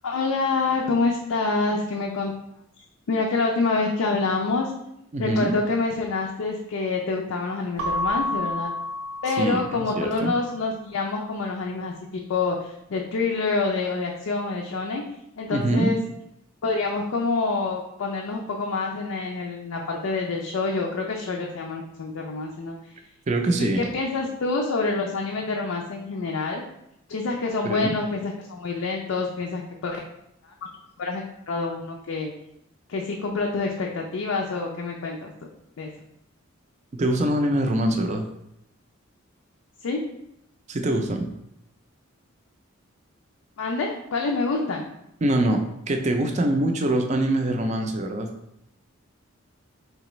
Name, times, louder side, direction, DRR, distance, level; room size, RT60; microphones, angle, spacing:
voice 1, 0.0-2.3 3.1-4.7 5.2-8.7 9.2-15.0 15.4-16.0 16.6-22.8 23.5-26.6 27.1-30.0 30.4-30.5 31.0-32.3 32.9-35.3 35.8-35.9 39.8-40.0 43.6-44.9, left 3 dB, 75° left, 0 dB, 0.4 m, -27 dB
voice 2, 5.1-5.6 9.4-10.3 15.5-16.0 23.3-23.9 27.6-27.9 37.0-38.2 40.7-41.3 45.2-45.6 45.9-48.3, right 1 dB, 30° right, 4 dB, 0.4 m, -24 dB
Keyboard (musical) / Bell, 7.8-10.2, left 1 dB, 80° right, 0.6 m, -30 dB
4.0 x 3.3 x 3.0 m, 0.81 s
head